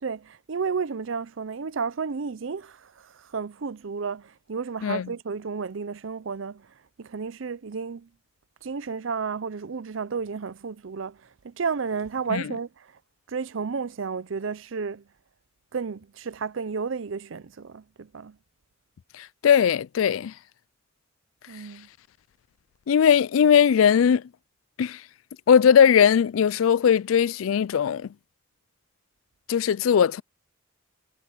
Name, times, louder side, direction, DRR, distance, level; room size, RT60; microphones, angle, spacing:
voice 1, 0.0-8.1 8.6-13.0 13.3-15.1 15.7-18.4 21.5-21.9, right 5 dB, 70° right, 0.6 m, -32 dB
voice 2, 19.1-20.3 22.9-24.2 24.8-25.0 25.5-28.1 29.5-30.2, left 8 dB, 85° left, 0.4 m, -19 dB
head